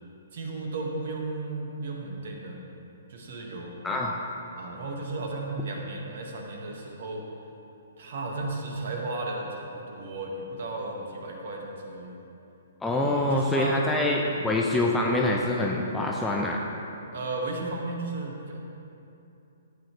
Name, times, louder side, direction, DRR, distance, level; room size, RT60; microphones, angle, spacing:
voice 1, 0.3-2.6 3.1-3.9 4.6-7.3 8.0-12.2 12.9-13.9 14.3-14.5 17.1-18.6, right 2 dB, 50° right, 0 dB, 1.9 m, -34 dB
voice 2, 3.8-4.2 12.8-16.6, left 2 dB, 5° left, -2 dB, 0.8 m, -25 dB
14.5 x 9.2 x 3.3 m, 2.8 s
figure-of-eight pair, 125°, 0 cm